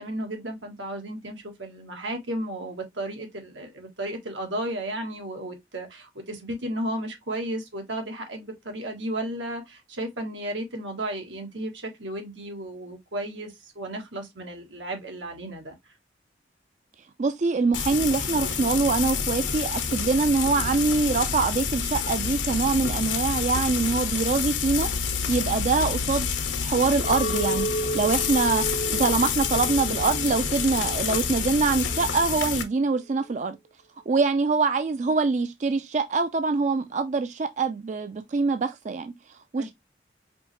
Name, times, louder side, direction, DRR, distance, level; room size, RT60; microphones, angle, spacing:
voice 1, 0.0-15.8 39.6-39.7, right 1 dB, 90° right, 1.6 m, -34 dB
voice 2, 17.2-26.3 26.6-33.6 34.1-39.1 39.5-39.7, right 4 dB, 40° right, 0.4 m, -24 dB
Frying (food), 17.7-32.6, left 6 dB, 90° left, 1.1 m, -28 dB
Chink clink, 27.0-31.4 31.8-32.4, right 1 dB, 50° left, 0.4 m, -33 dB
5.1 x 3.1 x 3.1 m
head